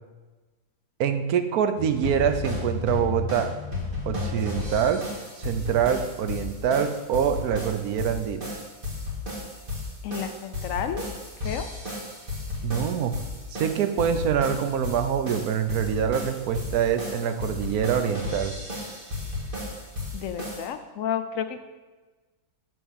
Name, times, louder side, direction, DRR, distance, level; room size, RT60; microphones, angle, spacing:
voice 1, 1.0-3.5 4.1-5.0 5.4-8.5 12.6-13.1 13.5-18.6, right 8 dB, 75° right, 8 dB, 1.2 m, -25 dB
sound 1, 1.8-20.7, left 3 dB, 35° right, 2.2 m, -34 dB
voice 2, 10.0-11.1 11.4-11.7 20.1-21.6, left 8 dB, 70° left, 9 dB, 0.9 m, -31 dB
6.8 x 6.3 x 6.3 m, 1.3 s
omnidirectional pair, 1.6 m